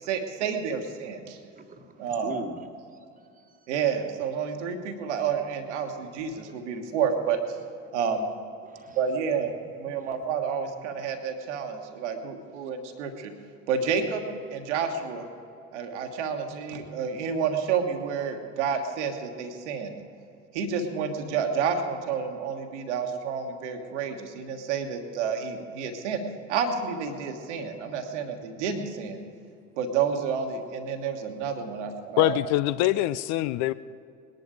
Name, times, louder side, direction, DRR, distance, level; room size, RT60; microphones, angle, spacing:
voice 1, 0.1-1.4 2.0-2.3 3.7-7.4 7.9-8.3 8.9-13.3 13.7-14.2 14.5-15.3 15.7-19.9 20.5-26.2 26.5-29.3 29.8-32.4, right 6 dB, 70° right, 1.5 m, -29 dB
voice 2, 1.6-2.6 3.5-3.6 4.8-4.9 6.5-6.6 8.6-9.0 9.8-10.2, right 2 dB, 20° right, 1.4 m, -41 dB
voice 3, 32.2-33.7, left 15 dB, 50° left, 0.4 m, -24 dB
20.0 x 10.5 x 4.9 m
figure-of-eight pair, 60°, 37 cm